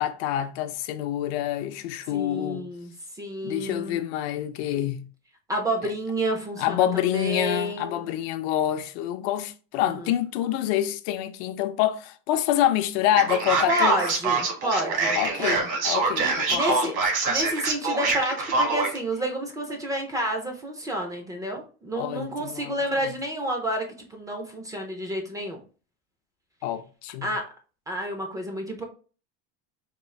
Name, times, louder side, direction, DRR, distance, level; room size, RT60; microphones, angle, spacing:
voice 1, 0.0-2.6 3.4-5.0 6.6-14.0 15.2-16.9 22.0-22.8 23.0-23.1 26.6-27.3, left 12 dB, 75° left, 0.5 m, -27 dB
voice 2, 2.1-4.0 5.5-8.1 9.8-10.1 13.7-15.7 16.2-16.9 17.3-25.6 27.2-27.4 27.9-28.8, right 1 dB, 10° right, 0.3 m, -30 dB
Male speech man speaking, 13.2-19.0, right 4 dB, 65° right, 1.3 m, -25 dB
3.7 x 2.3 x 3.1 m
cardioid pair, 155°, 31 cm